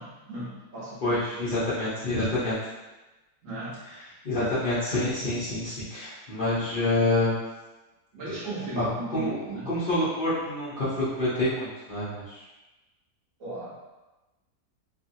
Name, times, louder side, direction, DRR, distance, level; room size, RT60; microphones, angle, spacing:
voice 1, 0.0-1.3 3.4-3.8 8.1-9.8 13.4-13.8, right 2 dB, 60° right, -6 dB, 1.0 m, -36 dB
voice 2, 1.0-2.6 4.2-7.3 8.2-8.4 8.7-12.4, left 1 dB, 45° left, -11 dB, 0.7 m, -27 dB
2.7 x 2.7 x 2.6 m, 1.1 s
omnidirectional pair, 1.6 m